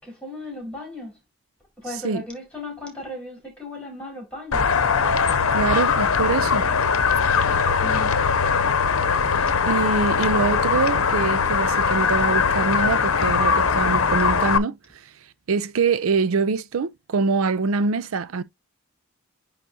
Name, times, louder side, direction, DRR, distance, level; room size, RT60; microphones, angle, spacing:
voice 1, 0.0-1.2 1.8-4.7 7.8-8.1, left 1 dB, 5° left, 4.5 m, -36 dB
sound 1, 4.5-14.6, left 5 dB, 80° left, 0.8 m, -21 dB
voice 2, 5.5-6.7 9.4-15.1 15.5-18.4, right 4 dB, 75° right, 0.5 m, -24 dB
10.0 x 3.8 x 2.7 m
head